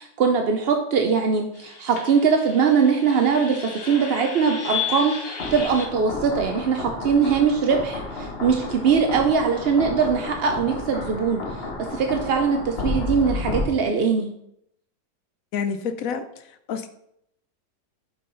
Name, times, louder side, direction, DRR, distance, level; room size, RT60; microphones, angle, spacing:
voice 1, 0.0-11.6 11.9-14.3, right 6 dB, 60° right, 4 dB, 0.6 m, -21 dB
sound 1, 1.6-13.7, left 3 dB, 40° left, 1.2 m, -32 dB
voice 2, 15.5-16.9, left 6 dB, 65° left, 9 dB, 0.9 m, -29 dB
7.6 x 5.6 x 3.8 m, 0.75 s
omnidirectional pair, 1.8 m